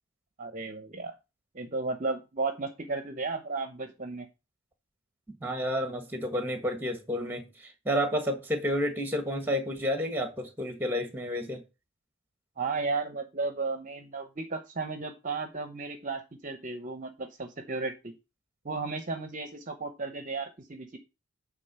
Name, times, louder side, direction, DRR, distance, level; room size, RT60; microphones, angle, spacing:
voice 1, 0.4-1.1 1.5-4.3 12.6-18.1 18.6-21.0, right 3 dB, 35° right, 0.8 m, -34 dB
voice 2, 5.4-11.6, equal, 10° right, 1.5 m, -30 dB
9.0 x 3.8 x 6.8 m
head